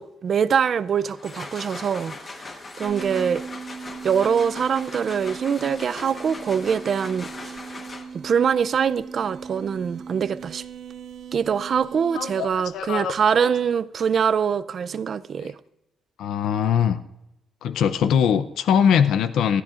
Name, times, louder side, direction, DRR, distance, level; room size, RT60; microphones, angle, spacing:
voice 1, 0.0-2.5 2.8-3.4 4.0-7.6 8.1-10.6 11.3-15.6, right 7 dB, 50° right, 0.4 m, -24 dB
sound 1, 1.0-8.4, left 3 dB, 30° left, 1.2 m, -40 dB
sound 2, 2.8-13.2, right 5 dB, 80° right, 1.3 m, -39 dB
voice 2, 12.1-12.5 12.7-13.5 15.4-15.5 16.2-17.0 17.6-19.6, left 8 dB, 80° left, 0.5 m, -22 dB
19.0 x 13.0 x 2.5 m
cardioid pair, 130°, 0 cm